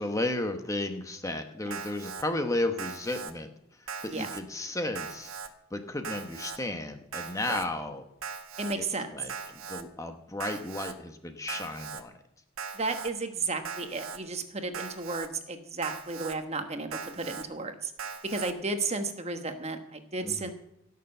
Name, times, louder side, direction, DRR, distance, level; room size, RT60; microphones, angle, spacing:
voice 1, 0.0-8.0 8.8-8.9 9.1-12.1 20.2-20.5, left 2 dB, 15° left, 6 dB, 0.9 m, -34 dB
Alarm, 1.7-2.2 2.8-3.3 3.9-4.4 5.0-5.5 6.0-6.6 7.1-7.7 8.2-8.8 9.3-9.8 10.4-10.9 11.5-12.0 12.6-13.1 13.7-14.2 14.7-15.3 15.8-16.4 16.9-17.5 18.0-18.5, right 6 dB, 85° right, 1.2 m, -39 dB
voice 2, 8.6-9.1 12.7-17.9 18.2-20.5, right 3 dB, 30° right, 7 dB, 1.2 m, -33 dB
17.0 x 6.8 x 7.8 m, 0.80 s
head